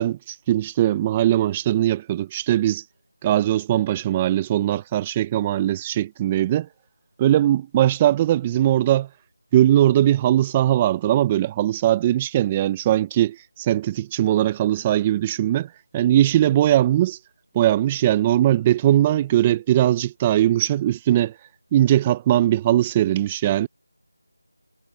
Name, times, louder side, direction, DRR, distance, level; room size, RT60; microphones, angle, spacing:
voice 1, 0.0-2.8 3.2-6.7 7.2-9.1 9.5-17.2 17.5-21.3 21.7-23.7, right 12 dB, 15° right, 0.6 m, -20 dB
figure-of-eight pair, 170°, 0 cm